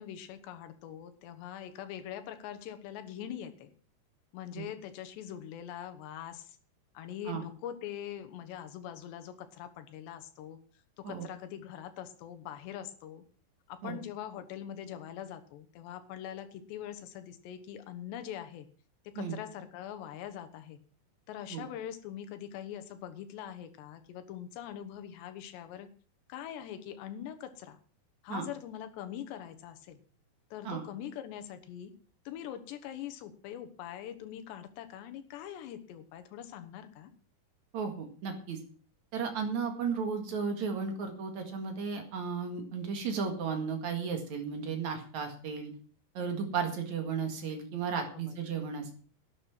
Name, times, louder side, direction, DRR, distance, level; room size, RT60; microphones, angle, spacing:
voice 1, 0.0-3.7 4.3-6.6 6.9-10.6 11.0-13.2 13.7-18.7 19.0-20.8 21.3-25.9 26.3-27.8 28.2-30.0 30.5-31.9 32.3-37.1 47.9-48.4, left 10 dB, 80° left, 8 dB, 3.4 m, -43 dB
voice 2, 37.7-38.6 39.1-45.7 46.1-48.9, right 5 dB, 50° right, 5 dB, 2.8 m, -34 dB
12.0 x 10.5 x 6.0 m, 0.41 s
omnidirectional pair, 4.9 m